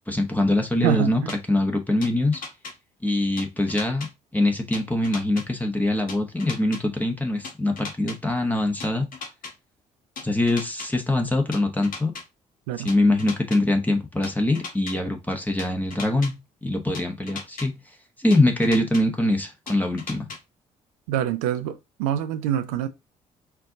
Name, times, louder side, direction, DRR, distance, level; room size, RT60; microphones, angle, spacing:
voice 1, 0.1-1.2 1.5-2.4 3.0-4.1 4.3-9.1 10.2-12.1 12.8-16.3 16.6-17.7 18.2-20.3, left 2 dB, 10° left, 1.1 m, -23 dB
voice 2, 0.8-1.3 12.7-12.9 21.1-22.9, right 11 dB, 70° right, 0.5 m, -26 dB
sound 1, 1.3-1.4 2.0-2.7 3.4-4.1 4.7-5.4 6.1-6.8 7.4-8.2 8.8-9.5 10.2-10.9 11.5-12.2 12.9-13.6 14.2-14.9 15.6-16.3 16.9-17.7 18.3-19.0 19.7-20.4, left 4 dB, 50° left, 1.2 m, -36 dB
4.6 x 2.5 x 3.9 m
figure-of-eight pair, 45°, 19 cm